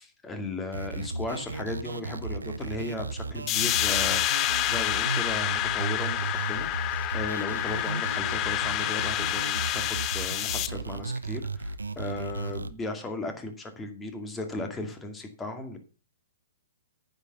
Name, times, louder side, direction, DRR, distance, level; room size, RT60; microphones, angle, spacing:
voice 1, 0.0-15.8, left 2 dB, 15° left, 6 dB, 2.2 m, -36 dB
sound 1, 0.7-12.7, right 3 dB, 85° right, 0.8 m, -35 dB
sound 2, 3.5-10.7, left 14 dB, 30° left, 0.7 m, -28 dB
9.6 x 6.9 x 6.8 m, 0.36 s
hypercardioid pair, 125°, 0 cm